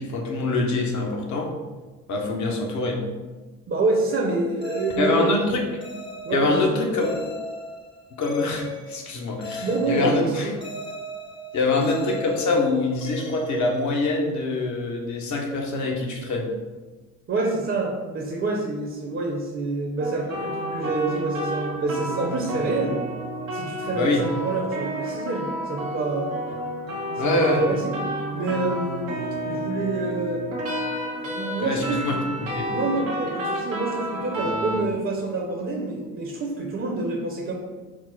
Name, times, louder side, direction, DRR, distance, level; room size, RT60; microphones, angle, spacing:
voice 1, 0.0-1.5 2.1-3.0 5.0-5.6 6.3-7.2 8.2-10.5 11.5-16.5 23.9-24.2 27.2-27.7 31.6-32.2 32.5-32.7, left 2 dB, 45° left, 1 dB, 1.0 m, -24 dB
voice 2, 3.7-5.3 6.2-7.0 9.6-10.6 11.7-11.9 17.3-23.0 23.5-26.3 27.2-27.9 28.3-30.4 31.1-32.2 32.7-37.5, right 3 dB, 30° right, 0 dB, 0.8 m, -27 dB
sound 1, 4.6-14.4, left 2 dB, 15° left, 0.6 m, -38 dB
sound 2, 20.0-34.8, right 1 dB, 85° right, 0.9 m, -30 dB
4.5 x 2.0 x 4.0 m, 1.3 s
hypercardioid pair, 55°, 39 cm